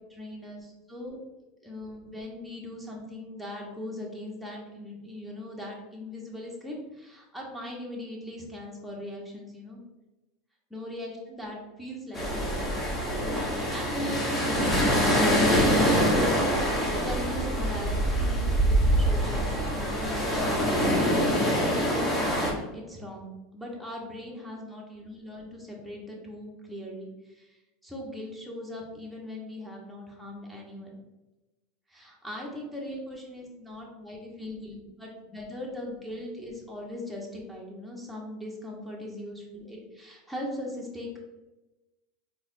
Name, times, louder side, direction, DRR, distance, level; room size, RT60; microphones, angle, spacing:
voice 1, 0.1-0.6 0.9-1.2 1.6-9.8 10.7-12.7 13.7-27.6 27.8-31.0 31.9-41.2, left 1 dB, ahead, -3 dB, 1.0 m, -39 dB
sound 1, 12.1-22.5, equal, 20° left, 1.1 m, -25 dB
3.9 x 2.9 x 2.6 m, 1.1 s
hypercardioid pair, 100°, 0 cm